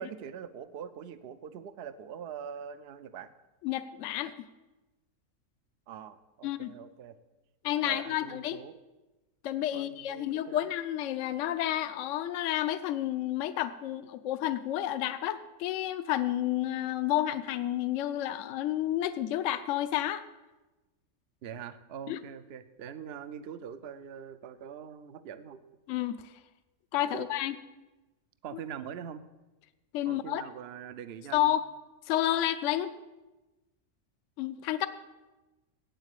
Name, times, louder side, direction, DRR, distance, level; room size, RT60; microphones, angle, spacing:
voice 1, 0.0-3.3 5.9-7.2 7.8-8.8 9.7-10.7 21.4-25.6 27.1-27.3 28.4-29.2 30.0-31.6, right 8 dB, 55° right, 13 dB, 0.7 m, -43 dB
voice 2, 3.6-4.3 6.4-6.7 7.6-8.6 9.4-20.2 22.1-22.2 25.9-26.2 26.9-27.6 29.9-30.4 31.3-31.6 32.1-32.9 34.4-34.9, left 13 dB, 65° left, 12 dB, 0.9 m, -30 dB
8.7 x 8.0 x 8.3 m, 1.1 s
omnidirectional pair, 1.5 m